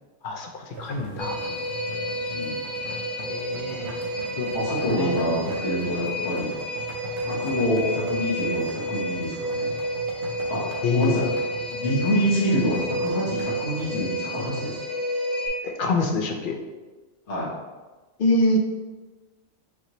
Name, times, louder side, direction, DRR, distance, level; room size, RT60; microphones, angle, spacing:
voice 1, 0.2-1.4 3.3-3.9 4.4-4.5 4.9-5.2 10.8-11.3 15.6-16.5 18.2-18.6, left 2 dB, 60° left, 3 dB, 0.6 m, -25 dB
sound 1, 0.7-14.0, right 3 dB, 75° right, 1.1 m, -42 dB
sound 2, 1.2-15.5, equal, 40° right, 1.0 m, -30 dB
voice 2, 2.3-2.6 4.5-6.5 7.2-9.7 10.5-11.2 11.7-14.8 17.3-17.5, equal, 80° left, -7 dB, 1.5 m, -27 dB
5.6 x 2.9 x 3.0 m, 1.2 s
omnidirectional pair, 1.2 m